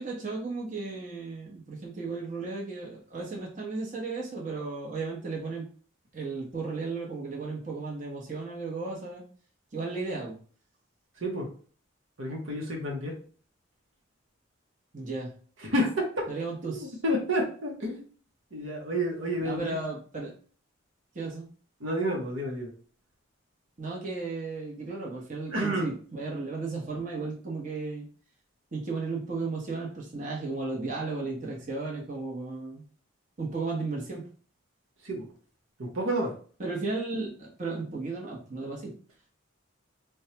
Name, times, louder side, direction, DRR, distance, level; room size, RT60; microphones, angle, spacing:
voice 1, 0.0-5.7 6.1-9.2 9.7-10.4 14.9-15.3 16.3-17.0 19.4-20.3 21.1-21.5 23.8-28.1 28.7-32.8 33.4-34.2 36.6-38.9, right 3 dB, 35° right, -3 dB, 1.0 m, -34 dB
voice 2, 11.2-11.5 12.2-13.2 15.6-16.3 16.6-18.1 18.5-19.8 21.8-22.7 25.5-25.9 35.0-35.3 35.8-36.3, equal, 70° right, -1 dB, 0.9 m, -30 dB
4.5 x 2.2 x 2.8 m, 0.42 s
head